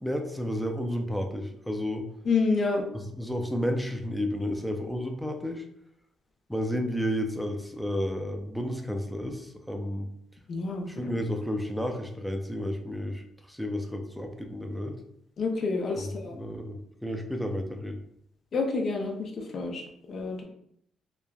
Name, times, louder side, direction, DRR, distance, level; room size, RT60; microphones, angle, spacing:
voice 1, 0.0-2.0 2.9-5.6 6.5-10.1 10.9-14.9 16.0-18.0, equal, ahead, 3 dB, 0.4 m, -32 dB
voice 2, 2.3-2.8 10.5-11.1 15.4-16.3 18.5-20.4, left 4 dB, 55° left, 2 dB, 0.5 m, -29 dB
3.2 x 2.1 x 2.3 m, 0.71 s
cardioid pair, 90°, 0 cm